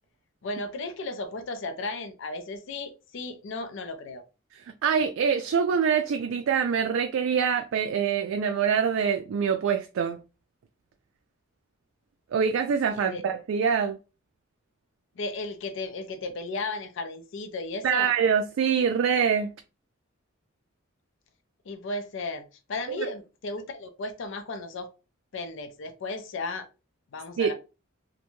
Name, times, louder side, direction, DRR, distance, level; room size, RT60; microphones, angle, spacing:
voice 1, 0.4-4.2 13.1-13.2 15.2-18.1 21.6-24.9 25.3-26.7 27.1-27.5, left 2 dB, 65° left, 0.5 m, -35 dB
voice 2, 4.5-10.2 12.3-14.0 17.8-19.5 22.9-23.1 27.4-27.5, right 7 dB, 70° right, 0.3 m, -25 dB
2.5 x 2.2 x 3.0 m
head